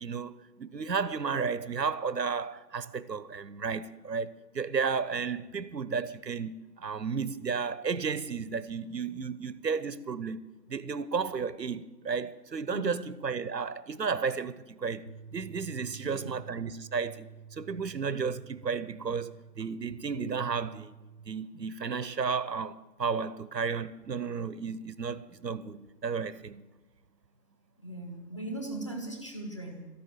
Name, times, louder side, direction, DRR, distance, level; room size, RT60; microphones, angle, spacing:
voice 1, 0.0-4.3 4.5-10.4 10.7-21.0 21.3-26.6, right 5 dB, 85° right, 1.0 m, -33 dB
voice 2, 12.7-13.1 15.9-16.3 27.8-29.9, right 1 dB, 20° left, 1.2 m, -39 dB
sound 1, 15.1-21.3, right 6 dB, 30° right, 0.8 m, -50 dB
13.5 x 11.5 x 7.6 m
figure-of-eight pair, 165°, 49 cm